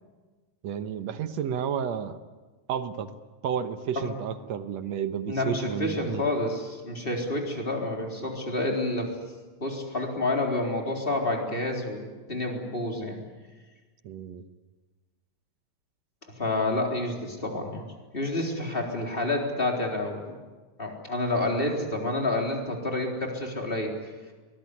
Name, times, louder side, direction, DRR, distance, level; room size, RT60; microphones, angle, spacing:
voice 1, 0.6-2.2 2.7-3.1 3.4-6.2 14.0-14.4, right 8 dB, 65° right, 11 dB, 2.1 m, -31 dB
voice 2, 5.3-9.2 9.6-13.2 16.3-17.8 18.1-20.4 20.8-23.9, left 2 dB, 15° left, 1 dB, 3.8 m, -29 dB
24.0 x 20.0 x 9.8 m, 1.3 s
omnidirectional pair, 3.5 m